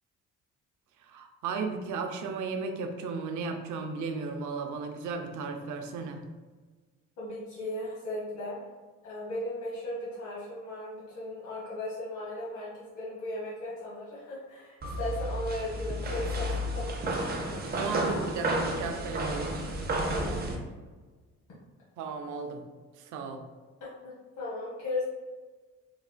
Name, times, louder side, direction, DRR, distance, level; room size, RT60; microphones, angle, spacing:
voice 1, 1.0-6.2 17.7-19.5 22.0-22.6 23.0-23.5, right 4 dB, 75° right, 5 dB, 0.5 m, -35 dB
voice 2, 7.2-8.6 9.0-17.6 20.1-20.4 23.8-25.0, left 1 dB, 80° left, -8 dB, 1.2 m, -37 dB
sound 1, 14.8-20.6, right 1 dB, 30° right, 0.6 m, -31 dB
4.0 x 2.4 x 2.2 m, 1.3 s
cardioid pair, 90°, 30 cm